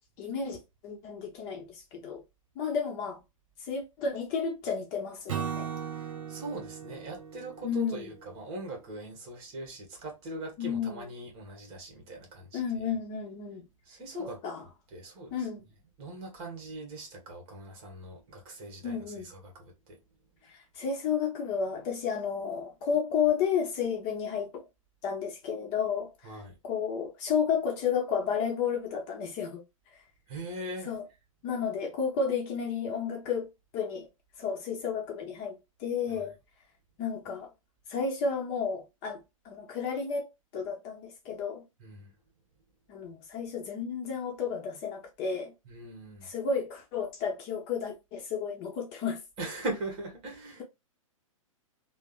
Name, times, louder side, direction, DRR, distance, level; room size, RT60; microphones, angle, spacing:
voice 1, 0.2-2.2 2.6-3.2 3.6-5.7 7.6-8.1 10.6-11.1 12.5-13.6 14.2-14.6 15.3-15.6 18.8-19.3 20.4-24.6 25.0-30.0 30.9-31.0 31.4-34.1 34.4-36.3 37.0-37.5 37.9-40.3 40.5-41.7 42.9-45.5 46.2-49.2, left 6 dB, 35° left, 0.7 m, -32 dB
Acoustic guitar / Strum, 5.3-8.6, right 8 dB, 65° right, 0.9 m, -38 dB
voice 2, 5.9-12.9 13.8-14.4 14.9-15.5 16.0-20.0 26.2-26.6 30.3-30.9 36.1-36.3 41.8-42.1 45.6-46.3 49.4-50.6, right 2 dB, 30° right, 1.3 m, -41 dB
3.3 x 2.1 x 2.4 m
hypercardioid pair, 130°, 18 cm